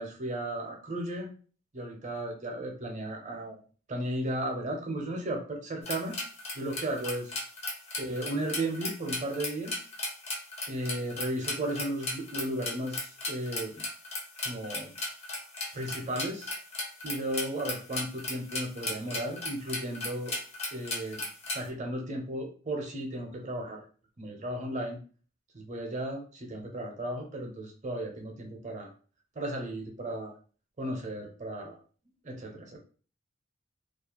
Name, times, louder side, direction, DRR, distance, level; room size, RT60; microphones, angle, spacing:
voice 1, 0.0-1.3 1.7-3.6 3.9-6.2 6.5-7.4 8.0-9.8 10.7-13.7 14.4-14.9 15.7-16.5 17.0-20.3 20.7-21.2 21.5-23.8 24.2-25.0 25.5-28.9 29.4-30.3 30.8-31.8 32.2-32.8, right 1 dB, 35° right, 2 dB, 0.6 m, -35 dB
sound 1, 5.8-21.7, left 2 dB, 30° left, 0.6 m, -36 dB
2.4 x 2.1 x 2.9 m, 0.40 s
head